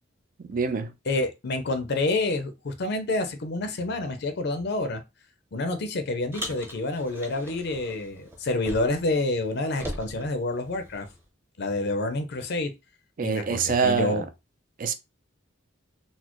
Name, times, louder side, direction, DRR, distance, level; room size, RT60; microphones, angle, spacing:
voice 1, 0.4-0.9 13.2-14.2 14.8-14.9, right 5 dB, 45° right, 0.4 m, -25 dB
voice 2, 1.1-5.0 5.5-11.1 11.6-12.7 13.2-14.2, left 2 dB, 55° left, 0.5 m, -28 dB
Car, 6.3-9.1 9.4-11.2, equal, 10° right, 0.8 m, -40 dB
4.1 x 2.0 x 2.9 m
head